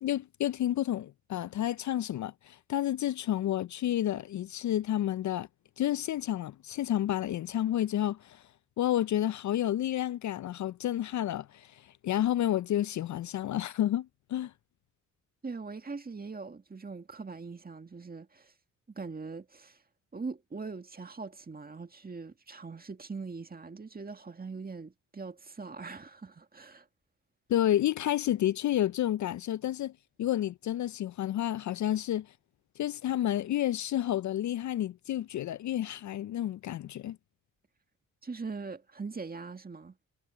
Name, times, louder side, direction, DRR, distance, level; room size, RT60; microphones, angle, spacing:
voice 1, 0.0-5.5 5.8-8.4 8.8-14.5 27.5-29.9 30.2-32.3 32.8-37.2, left 12 dB, 55° left, 0.5 m, -30 dB
voice 2, 15.4-18.5 18.9-19.8 20.1-26.9 38.2-40.0, right 4 dB, 25° right, 1.9 m, -41 dB
cardioid pair, 70°, 34 cm